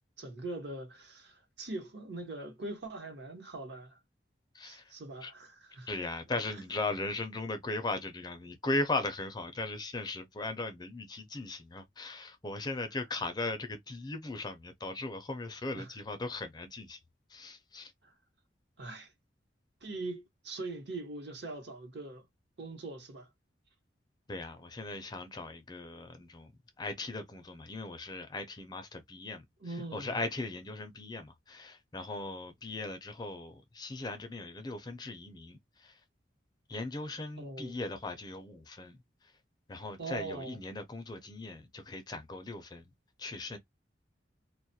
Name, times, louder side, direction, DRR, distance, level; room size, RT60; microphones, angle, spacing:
voice 1, 0.2-4.0 4.6-5.9 6.5-6.6 15.7-15.9 18.0-18.1 18.8-19.1 19.8-22.3 22.6-23.3 29.6-30.2 37.4-37.7 40.0-40.6, right 2 dB, 65° right, 0.9 m, -42 dB
voice 2, 4.5-4.9 5.2-5.3 5.9-17.0 17.3-17.9 24.3-26.5 26.8-36.0 36.7-39.3 39.7-42.9 43.2-43.6, left 2 dB, 20° left, 0.4 m, -38 dB
2.2 x 2.1 x 2.7 m
head